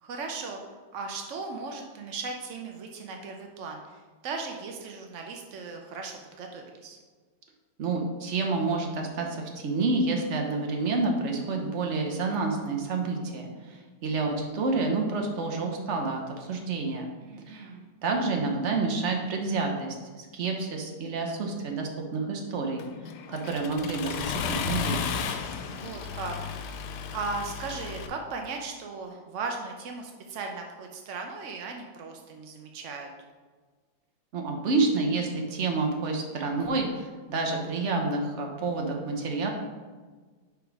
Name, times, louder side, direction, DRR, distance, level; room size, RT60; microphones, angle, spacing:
voice 1, 0.0-0.6 0.9-7.0 17.2-17.9 25.7-26.7 27.1-33.1, right 4 dB, 80° right, 2 dB, 0.6 m, -37 dB
voice 2, 7.8-17.1 17.5-17.7 18.0-22.8 23.3-25.0 34.3-39.5, right 3 dB, 50° right, 2 dB, 0.9 m, -29 dB
Accelerating revving vroom, 22.8-28.1, left 6 dB, 70° left, 1.1 m, -34 dB
5.1 x 5.0 x 4.7 m, 1.4 s
omnidirectional pair, 2.0 m